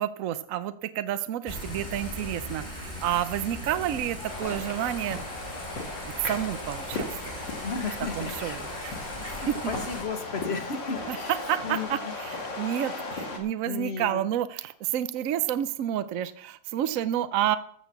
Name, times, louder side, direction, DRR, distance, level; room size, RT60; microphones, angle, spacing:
voice 1, 0.0-5.4 6.2-7.4 8.2-8.6 8.8-8.9 9.5-9.6 11.1-11.2 11.5-17.6, right 11 dB, 70° right, 12 dB, 0.8 m, -30 dB
Thunder / Rain, 1.5-10.0, left 1 dB, 15° left, 3.6 m, -39 dB
sound 1, 4.3-13.4, left 2 dB, 75° left, 2.9 m, -36 dB
voice 2, 7.6-9.1 9.3-12.1 12.8-13.4 13.7-14.2, left 5 dB, 40° left, 7 dB, 1.4 m, -35 dB
14.5 x 6.4 x 7.0 m, 0.63 s
omnidirectional pair, 2.0 m